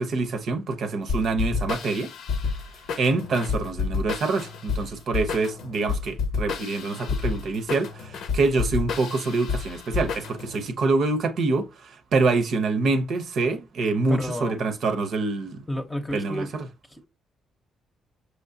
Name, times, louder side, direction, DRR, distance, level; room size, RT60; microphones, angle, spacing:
voice 1, 0.0-2.1 3.0-15.6 16.1-16.7, right 3 dB, 65° right, 0.8 m, -26 dB
sound 1, 1.1-10.6, left 5 dB, 75° left, 0.8 m, -30 dB
voice 2, 14.1-14.7 15.7-16.5 16.9-17.1, left 1 dB, 15° left, 0.8 m, -31 dB
5.9 x 3.1 x 2.7 m
cardioid pair, 90°, 0 cm